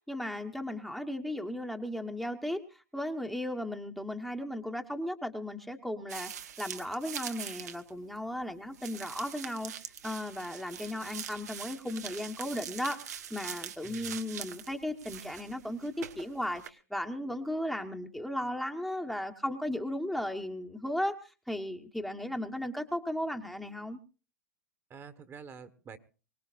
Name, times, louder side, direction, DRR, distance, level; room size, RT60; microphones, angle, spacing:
voice 1, 0.1-24.0, left 1 dB, ahead, 4 dB, 1.2 m, -36 dB
sound 1, 6.1-8.2 8.7-16.7, right 9 dB, 80° right, 1.5 m, -43 dB
voice 2, 13.8-14.2 24.9-26.0, right 6 dB, 25° right, 11 dB, 1.5 m, -48 dB
24.5 x 18.5 x 2.5 m, 0.35 s
hypercardioid pair, 110°, 9 cm